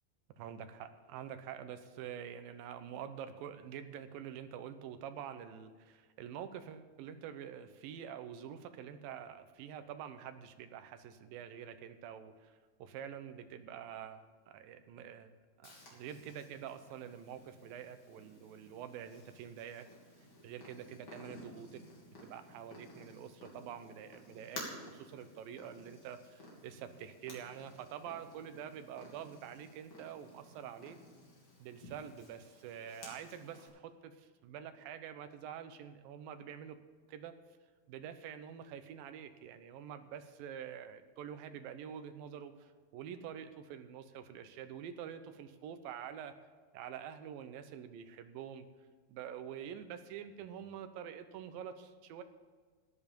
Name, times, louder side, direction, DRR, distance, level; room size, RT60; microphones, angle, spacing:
voice 1, 0.4-15.3 15.6-19.9 20.4-22.0 22.2-31.0 31.6-36.8 37.1-37.4 37.9-46.3 46.7-48.7 49.1-52.2, right 9 dB, 75° right, 9 dB, 2.4 m, -47 dB
Purr, 15.6-33.7, left 1 dB, 35° left, 3.4 m, -54 dB
14.5 x 10.5 x 5.3 m, 1.5 s
omnidirectional pair, 4.5 m